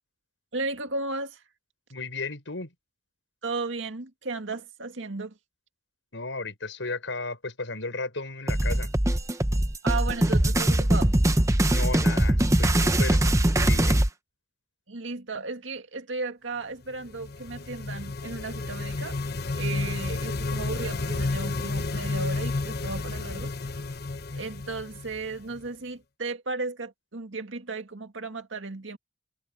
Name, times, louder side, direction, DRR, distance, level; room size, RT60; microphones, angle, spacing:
voice 1, 0.5-1.4 3.4-5.4 9.8-11.1 14.9-19.2 19.5-23.5 24.3-29.0, right 3 dB, 85° right, 2.0 m, -35 dB
voice 2, 1.9-2.7 6.1-8.9 11.7-13.2 13.5-14.0, left 3 dB, 85° left, 4.8 m, -34 dB
sound 1, 8.5-14.1, right 1 dB, 15° right, 0.9 m, -22 dB
sound 2, 16.9-25.7, left 3 dB, 55° left, 1.1 m, -31 dB
head